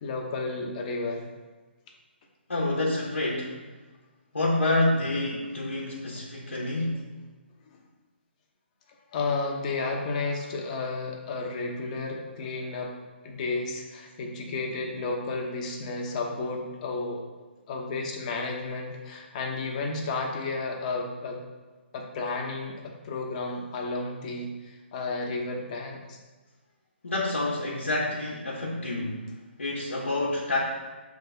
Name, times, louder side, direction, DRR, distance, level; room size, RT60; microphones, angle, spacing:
voice 1, 0.0-1.2 9.1-13.0 13.2-17.2 17.7-21.4 21.9-26.2, left 3 dB, 35° left, 1 dB, 1.0 m, -32 dB
voice 2, 2.5-3.5 4.3-7.1 27.0-29.2 29.6-30.6, left 2 dB, 85° left, -4 dB, 1.1 m, -28 dB
6.4 x 3.6 x 4.1 m, 1.3 s
figure-of-eight pair, 140°, 6 cm